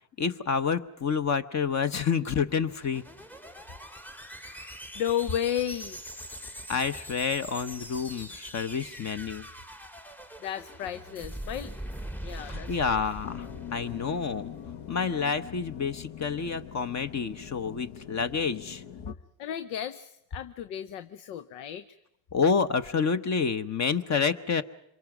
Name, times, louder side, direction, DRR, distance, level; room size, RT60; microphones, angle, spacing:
voice 1, 0.2-3.0 6.7-9.5 12.5-14.5 14.9-18.8 22.3-24.6, left 6 dB, 40° left, 10 dB, 1.0 m, -28 dB
sound 1, 2.5-14.8, right 1 dB, 5° left, 0.8 m, -42 dB
voice 2, 4.4-6.0 10.4-11.7 12.2-13.0 19.4-21.8, left 10 dB, 90° left, 12 dB, 0.9 m, -33 dB
sound 2, 13.2-19.1, left 9 dB, 65° left, 1.2 m, -43 dB
26.0 x 23.0 x 6.1 m, 0.80 s
supercardioid pair, 80°, 44 cm